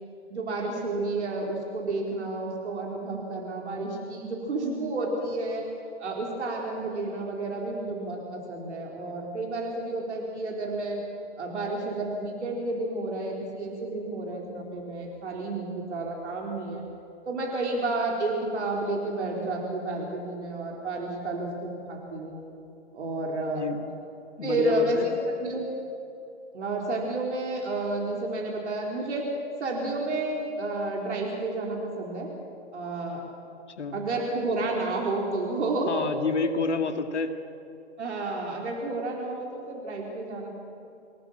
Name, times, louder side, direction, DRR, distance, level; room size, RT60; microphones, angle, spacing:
voice 1, 0.3-5.7 6.0-11.0 11.4-16.8 17.3-22.4 22.9-23.7 24.4-25.1 25.4-25.6 26.5-29.3 29.6-32.3 32.7-33.2 33.9-36.1 36.4-36.5 38.0-40.5, right 2 dB, 75° right, -1 dB, 4.6 m, -31 dB
voice 2, 24.4-25.0 33.8-34.0 35.9-37.3, left 4 dB, 80° left, 6 dB, 2.2 m, -29 dB
27.0 x 18.0 x 7.5 m, 2.7 s
hypercardioid pair, 120°, 34 cm